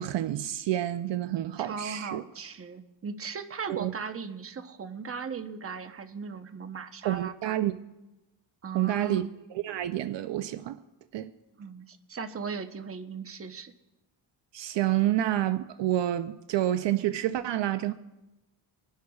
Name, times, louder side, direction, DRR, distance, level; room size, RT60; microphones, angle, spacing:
voice 1, 0.0-2.2 3.7-3.9 7.0-7.7 8.7-10.8 11.1-11.3 14.5-17.9, right 13 dB, 65° right, 0.6 m, -28 dB
voice 2, 1.6-7.6 8.6-9.3 11.6-13.7, right 5 dB, 30° right, 0.9 m, -38 dB
25.5 x 11.0 x 2.4 m
cardioid pair, 95°, 47 cm